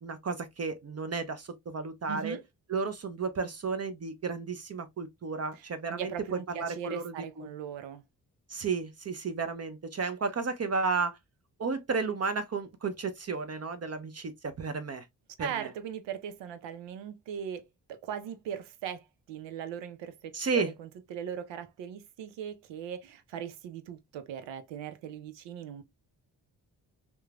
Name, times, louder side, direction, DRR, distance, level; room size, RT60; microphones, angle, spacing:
voice 1, 0.0-2.4 2.7-7.5 8.5-11.2 11.6-15.1 15.4-15.7 20.3-20.7, right 4 dB, 35° right, 0.5 m, -33 dB
voice 2, 2.1-2.4 5.5-8.0 15.4-25.8, right 9 dB, 80° right, 0.6 m, -39 dB
3.0 x 2.1 x 2.3 m
supercardioid pair, 40°, 44 cm